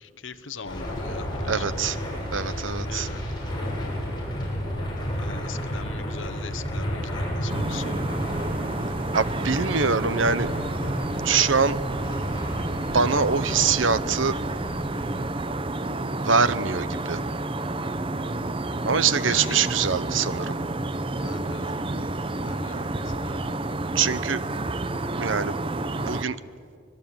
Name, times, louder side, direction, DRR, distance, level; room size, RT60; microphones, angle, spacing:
voice 1, 0.0-1.5 2.8-3.2 5.2-7.9 9.7-10.2 19.3-19.6 21.2-21.7 22.4-22.9 23.1-23.4, left 4 dB, 75° left, 11 dB, 1.2 m, -40 dB
sound 1, 0.7-15.3, equal, 20° left, 7.0 m, -32 dB
voice 2, 1.5-2.0 2.3-3.1 9.1-10.5 11.2-11.8 12.9-14.3 16.2-17.2 18.8-20.5 23.9-24.4 25.2-25.5 26.0-26.4, right 5 dB, 75° right, 15 dB, 1.0 m, -23 dB
sound 2, 7.5-26.2, right 2 dB, 25° right, 0.8 m, -30 dB
24.5 x 22.0 x 9.1 m, 2.3 s
head